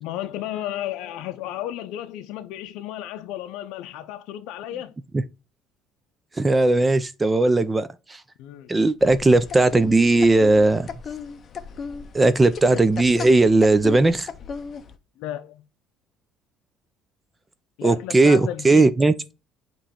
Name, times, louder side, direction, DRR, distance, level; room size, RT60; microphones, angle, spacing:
voice 1, 0.0-4.9 8.4-8.8 15.2-15.6 17.8-18.9, left 12 dB, 80° left, 0.5 m, -33 dB
voice 2, 6.4-8.2 8.7-10.9 12.1-14.3 17.8-19.1, right 2 dB, 15° right, 0.4 m, -18 dB
sound 1, 9.0-14.9, left 6 dB, 35° left, 0.6 m, -36 dB
7.5 x 3.1 x 4.2 m
cardioid pair, 140°, 0 cm